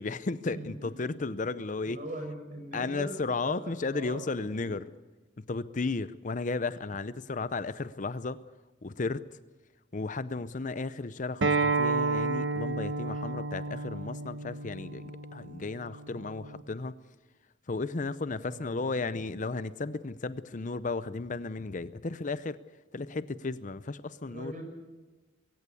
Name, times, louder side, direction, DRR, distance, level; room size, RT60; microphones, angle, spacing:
voice 1, 0.0-2.0 2.7-4.9 5.4-8.4 8.8-9.3 9.9-16.9 17.7-22.6 22.9-24.5, left 3 dB, 45° left, 15 dB, 0.7 m, -34 dB
voice 2, 1.8-3.2 3.4-4.2 18.4-18.9 24.2-24.6, right 1 dB, 45° right, 4 dB, 6.8 m, -41 dB
Acoustic guitar, 11.4-16.6, right 3 dB, 80° right, 1.1 m, -31 dB
22.5 x 17.5 x 8.4 m, 1.2 s
head